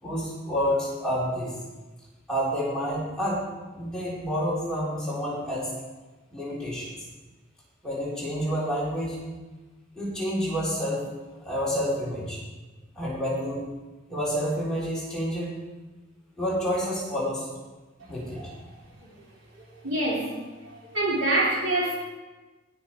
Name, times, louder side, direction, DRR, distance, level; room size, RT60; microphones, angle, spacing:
voice 1, 0.0-1.5 2.3-3.4 3.7-5.7 6.3-6.9 7.8-9.2 10.0-11.0 11.4-12.4 13.0-13.6 14.1-15.5 16.4-17.5 18.1-18.5, equal, 5° left, -8 dB, 3.7 m, -28 dB
voice 2, 19.8-20.3 20.6-22.0, right 1 dB, 75° right, -4 dB, 3.3 m, -25 dB
18.0 x 6.4 x 4.5 m, 1.2 s
head